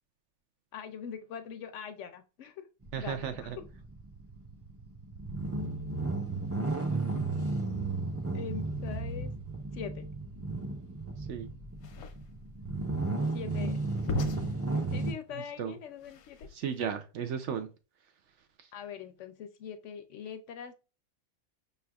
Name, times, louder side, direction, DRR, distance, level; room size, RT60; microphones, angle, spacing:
voice 1, 0.7-2.7 3.0-3.5 8.2-9.3 9.7-10.1 13.3-13.8 14.9-16.5 18.7-20.7, left 7 dB, 70° left, 0.8 m, -42 dB
sound 1, 2.8-15.1, right 3 dB, 25° right, 0.3 m, -34 dB
voice 2, 2.9-3.6 11.2-11.5 15.6-15.8 16.5-17.7 18.6-18.7, right 8 dB, 65° right, 0.8 m, -35 dB
sound 2, 11.7-16.9, left 4 dB, 90° left, 1.1 m, -40 dB
5.5 x 3.3 x 2.3 m
omnidirectional pair, 1.4 m